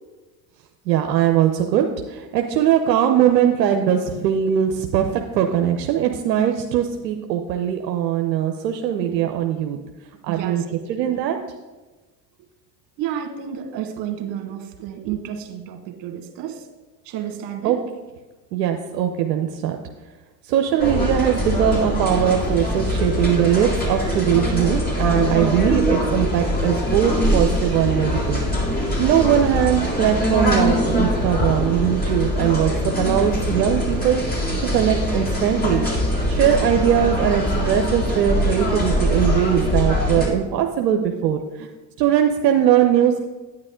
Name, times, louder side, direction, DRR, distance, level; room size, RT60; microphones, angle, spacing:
voice 1, 0.9-9.8 10.2-10.6 10.9-11.4 17.6-17.8 18.5-19.8 20.5-28.4 29.0-34.2 34.6-35.9 36.3-41.7 42.0-43.3, right 10 dB, 80° right, 4 dB, 0.8 m, -20 dB
voice 2, 10.3-11.2 13.0-16.7 17.1-17.8, right 9 dB, 60° right, 5 dB, 1.8 m, -31 dB
sound 1, 20.8-40.3, equal, 20° left, 3.6 m, -22 dB
9.7 x 9.3 x 3.7 m, 1.2 s
hypercardioid pair, 75°, 50 cm